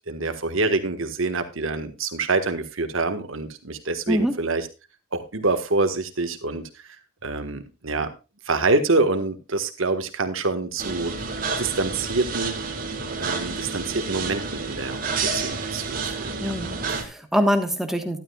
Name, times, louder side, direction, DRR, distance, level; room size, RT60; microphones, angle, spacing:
voice 1, 0.1-4.7 5.1-6.8 7.2-8.1 8.4-11.1 11.6-12.6 13.2-16.5, right 3 dB, 75° right, 7 dB, 1.5 m, -26 dB
sound 1, 10.8-17.0, right 4 dB, 45° right, 2.0 m, -30 dB
voice 2, 16.4-18.2, equal, ahead, 5 dB, 1.3 m, -24 dB
12.0 x 12.0 x 2.4 m, 0.28 s
head